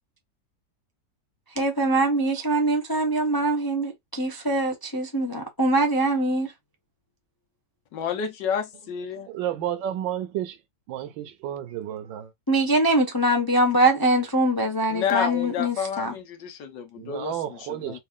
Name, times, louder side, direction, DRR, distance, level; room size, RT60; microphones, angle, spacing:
voice 1, 1.6-6.5 12.5-16.2, right 1 dB, 30° left, 0.4 m, -23 dB
voice 2, 7.9-9.3 14.9-17.3 17.7-18.0, left 7 dB, 70° left, 1.5 m, -29 dB
voice 3, 9.1-10.6 10.9-12.3 17.0-18.0, right 11 dB, 80° right, 1.5 m, -31 dB
4.2 x 2.5 x 3.6 m
omnidirectional pair, 2.0 m